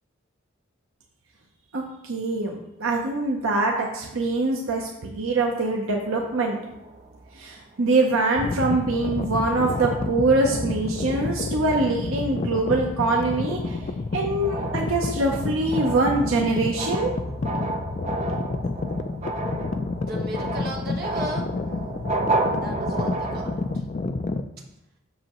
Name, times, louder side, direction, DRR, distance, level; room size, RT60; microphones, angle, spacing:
voice 1, 1.7-6.6 7.3-13.8 14.1-17.2, right 2 dB, 75° right, 0 dB, 0.8 m, -24 dB
sound 1, 5.9-7.8 8.4-8.6 9.0-9.3 9.7-11.0 11.5-11.8 12.2-23.8, right 2 dB, 30° right, 0.5 m, -33 dB
sound 2, 8.4-24.4, left 3 dB, 35° left, 0.3 m, -30 dB
voice 2, 19.9-22.1 22.6-23.9, right 1 dB, 45° right, -3 dB, 1.4 m, -36 dB
7.5 x 6.5 x 3.0 m, 0.86 s
head